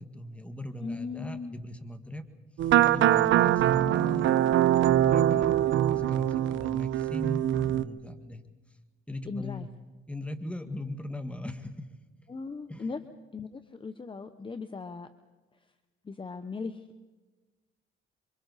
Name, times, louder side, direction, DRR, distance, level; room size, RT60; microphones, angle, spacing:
voice 1, 0.0-2.2 2.6-4.4 4.8-8.4 9.1-9.7 10.1-11.8 12.7-12.9, left 1 dB, 5° left, 8 dB, 1.8 m, -39 dB
voice 2, 0.8-1.5 5.8-6.0 9.2-9.7 12.3-13.0 13.3-15.1 16.0-16.9, left 4 dB, 25° left, 9 dB, 1.0 m, -38 dB
sound 1, 2.6-7.8, right 12 dB, 75° right, 0.8 m, -23 dB
27.5 x 24.0 x 4.1 m, 1.2 s
cardioid pair, 90°, 20 cm